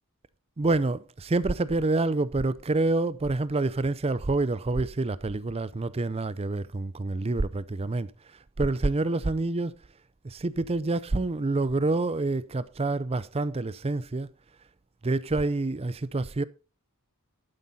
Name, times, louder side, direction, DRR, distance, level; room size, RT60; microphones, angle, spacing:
voice 1, 0.6-9.8 10.2-14.3 15.0-16.4, right 2 dB, 25° right, 0.5 m, -27 dB
11.5 x 9.4 x 4.1 m
head